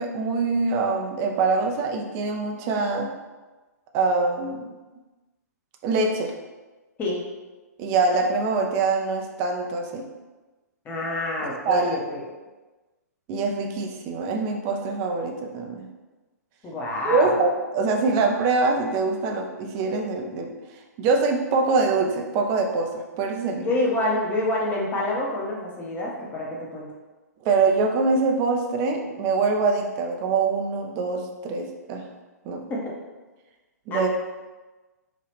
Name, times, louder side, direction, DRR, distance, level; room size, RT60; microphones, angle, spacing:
voice 1, 0.0-3.1 3.9-4.7 5.8-6.3 7.8-10.0 11.5-12.0 13.3-15.9 17.0-20.6 21.0-23.6 27.4-32.0 32.5-32.6 33.9-34.1, right 4 dB, 30° right, 2 dB, 0.4 m, -24 dB
voice 2, 10.8-12.3 16.6-17.3 23.6-26.9 32.7-32.9 33.9-34.1, left 2 dB, 20° left, -3 dB, 0.7 m, -27 dB
2.8 x 2.3 x 3.3 m, 1.2 s
figure-of-eight pair, 120°, 9 cm